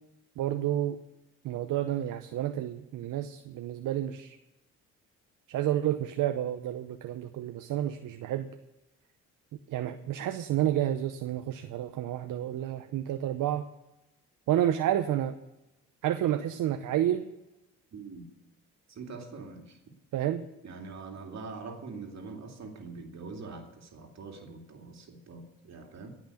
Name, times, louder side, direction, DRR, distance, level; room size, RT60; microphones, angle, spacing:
voice 1, 0.4-1.0 1.4-4.4 5.5-8.5 9.7-13.6 14.5-15.3 16.0-17.2 20.1-20.4, right 12 dB, 70° right, 9 dB, 0.8 m, -30 dB
voice 2, 17.9-18.3 18.9-19.8 20.6-26.1, right 4 dB, 55° right, 2 dB, 2.6 m, -43 dB
16.5 x 6.1 x 8.4 m, 0.96 s
cardioid pair, 85°, 33 cm